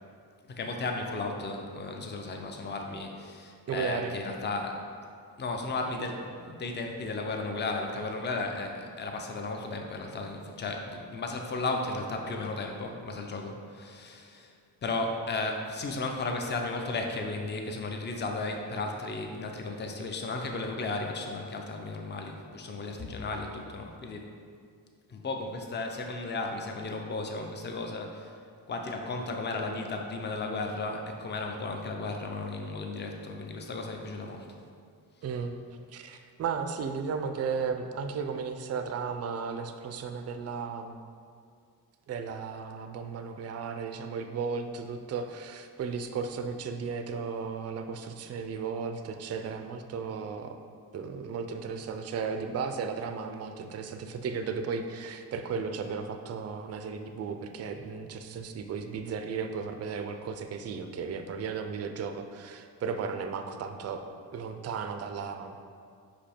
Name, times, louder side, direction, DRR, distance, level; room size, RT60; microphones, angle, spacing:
voice 1, 0.5-4.8 5.4-14.5 14.8-24.3 25.1-28.4 28.7-34.5, left 3 dB, 30° left, 3 dB, 0.5 m, -34 dB
voice 2, 3.7-4.1 35.2-35.5 35.9-41.0 42.1-50.6 50.9-64.0 64.3-65.6, right 5 dB, 40° right, 7 dB, 0.4 m, -35 dB
5.4 x 5.1 x 4.3 m, 2.2 s
wide cardioid pair, 160°, 38 cm